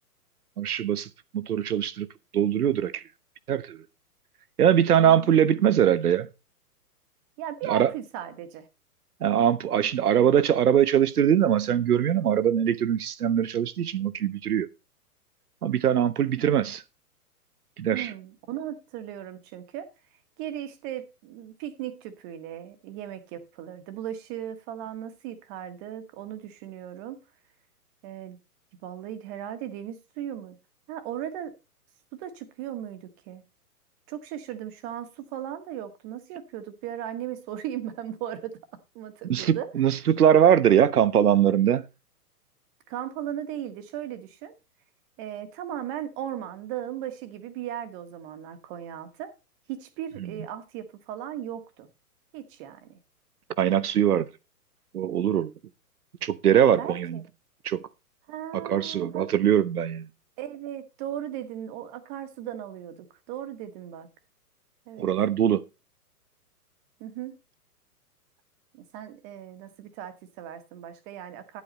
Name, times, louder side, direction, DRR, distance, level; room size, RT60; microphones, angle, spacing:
voice 1, 0.6-1.1 1.3-2.1 2.3-3.0 3.5-3.8 4.6-6.3 7.7-7.9 9.2-14.7 15.6-16.8 17.8-18.1 39.3-41.8 50.2-50.3 53.6-54.3 54.9-55.5 56.2-57.2 57.6-57.8 58.5-60.1 65.0-65.6, right 9 dB, 70° right, 1.1 m, -22 dB
voice 2, 4.9-5.3 7.4-8.7 16.4-16.5 17.9-19.9 20.4-27.2 28.0-28.4 28.8-30.6 30.9-31.5 32.2-33.4 34.1-38.6 38.9-39.7 42.9-44.5 45.2-49.3 49.7-51.9 52.3-53.0 56.8-57.2 58.3-59.3 60.4-64.1 64.9-65.1 67.0-67.4 68.7-71.6, right 11 dB, 35° right, 1.7 m, -37 dB
11.5 x 8.5 x 4.1 m
figure-of-eight pair, 120°, 46 cm